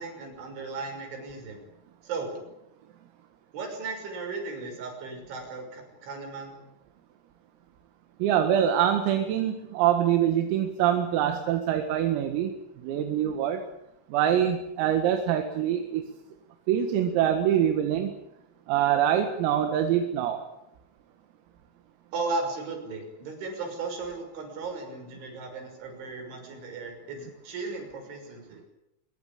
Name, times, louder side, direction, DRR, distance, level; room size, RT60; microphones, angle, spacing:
voice 1, 0.0-1.6 2.0-2.4 3.5-6.6 22.1-28.6, right 3 dB, 65° right, 4 dB, 8.4 m, -36 dB
voice 2, 8.2-12.5 12.8-13.6 14.1-16.1 16.7-18.1 18.7-20.4, right 10 dB, 85° right, 6 dB, 4.4 m, -24 dB
24.5 x 22.5 x 8.7 m, 0.84 s
omnidirectional pair, 5.9 m